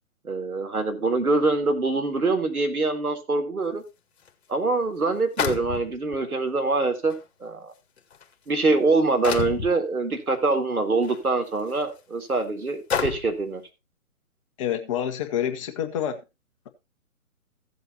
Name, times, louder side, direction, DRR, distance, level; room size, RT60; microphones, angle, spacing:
voice 1, 0.2-3.8 4.5-7.1 7.4-7.7 8.5-13.6, right 3 dB, 85° right, 3.7 m, -24 dB
sound 1, 4.3-4.4 5.4-6.2 7.1-7.2 8.0-8.2 9.2-9.7 11.0-11.2 11.8-11.9 12.9-13.4, left 7 dB, 50° left, 2.1 m, -28 dB
voice 2, 14.6-16.2, left 9 dB, 20° left, 1.1 m, -27 dB
15.5 x 7.9 x 2.9 m
figure-of-eight pair, 140°, 43 cm